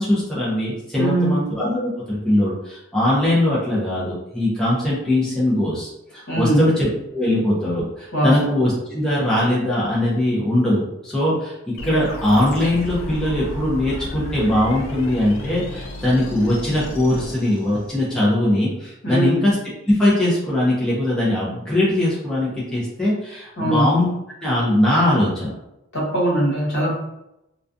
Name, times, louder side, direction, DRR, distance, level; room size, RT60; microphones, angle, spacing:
voice 1, 0.0-24.1 24.4-25.5, left 1 dB, 5° left, -8 dB, 0.5 m, -21 dB
voice 2, 1.0-1.4 6.3-6.7 8.1-8.5 19.0-19.4 23.6-23.9 25.9-26.9, right 1 dB, 55° left, -5 dB, 1.0 m, -21 dB
sound 1, 11.8-18.2, left 1 dB, 85° left, 0.5 m, -33 dB
2.3 x 2.3 x 2.6 m, 0.88 s
head